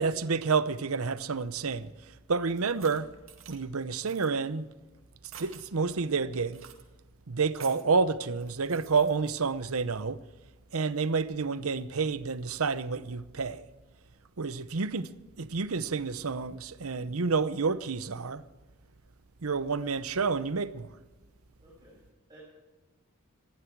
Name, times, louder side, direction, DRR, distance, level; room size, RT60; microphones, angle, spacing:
voice 1, 0.0-1.9 2.3-3.1 3.5-4.7 5.4-6.6 7.3-10.2 10.7-13.6 14.4-15.1 15.4-18.4 19.4-20.9, right 4 dB, 85° right, 0.8 m, -29 dB
sound 1, 2.6-3.6 4.0-4.3 5.2-5.7 6.5-6.8 7.5-7.9 8.4-9.3, right 9 dB, 65° right, 2.1 m, -49 dB
voice 2, 21.6-22.4, equal, 20° right, 6.9 m, -57 dB
20.5 x 15.0 x 4.7 m
head